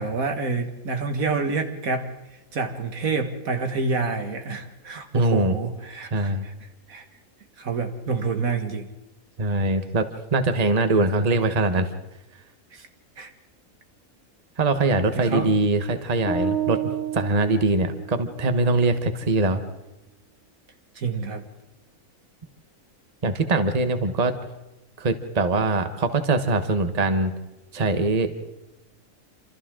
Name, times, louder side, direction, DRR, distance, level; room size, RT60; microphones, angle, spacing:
voice 1, 0.0-2.1 2.5-6.5 6.9-7.1 7.6-8.9 12.7-12.9 13.2-13.3 15.1-15.5 21.0-21.4, right 4 dB, 80° right, 6 dB, 2.1 m, -28 dB
voice 2, 5.1-5.5 6.1-6.4 9.4-10.1 10.3-11.9 14.6-16.8 17.1-19.6 23.2-24.3 25.0-27.3 27.7-28.3, right 2 dB, 30° right, 8 dB, 1.3 m, -22 dB
sound 1, 16.3-18.5, right 6 dB, 55° left, 3.1 m, -29 dB
27.5 x 27.0 x 3.8 m, 1.0 s
omnidirectional pair, 1.5 m